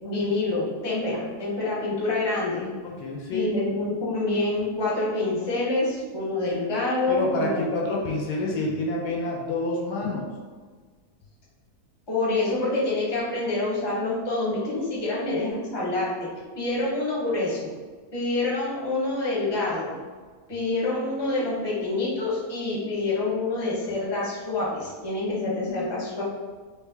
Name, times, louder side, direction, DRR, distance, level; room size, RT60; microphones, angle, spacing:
voice 1, 0.0-2.7 3.3-7.7 12.1-16.1 16.5-17.7 18.1-19.9 20.5-26.2, left 2 dB, 20° left, -7 dB, 0.8 m, -27 dB
voice 2, 2.8-3.6 7.1-10.2, left 2 dB, 75° left, -1 dB, 1.1 m, -28 dB
3.3 x 2.5 x 3.4 m, 1.5 s
omnidirectional pair, 1.8 m